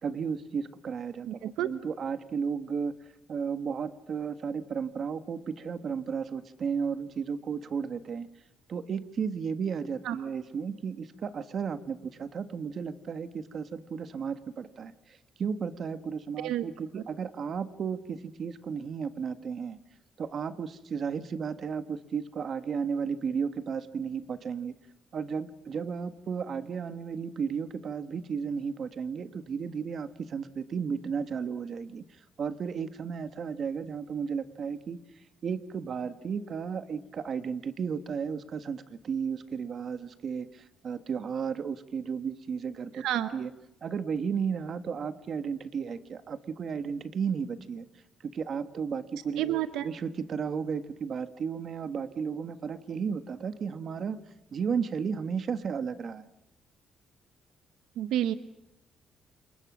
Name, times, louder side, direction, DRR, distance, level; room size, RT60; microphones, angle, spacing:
voice 1, 0.0-2.9 3.3-8.3 8.7-14.9 15.4-19.8 20.2-24.7 25.1-32.0 32.4-35.0 35.4-43.0 43.3-43.5 43.8-47.9 48.2-54.2 54.5-56.3, right 6 dB, 55° right, 10 dB, 1.7 m, -34 dB
voice 2, 1.3-1.7 10.0-10.2 16.4-16.7 42.9-43.4 49.4-49.9 58.0-58.3, right 12 dB, 90° right, 12 dB, 0.9 m, -29 dB
29.0 x 27.0 x 6.3 m, 0.88 s
cardioid pair, 90°, 0 cm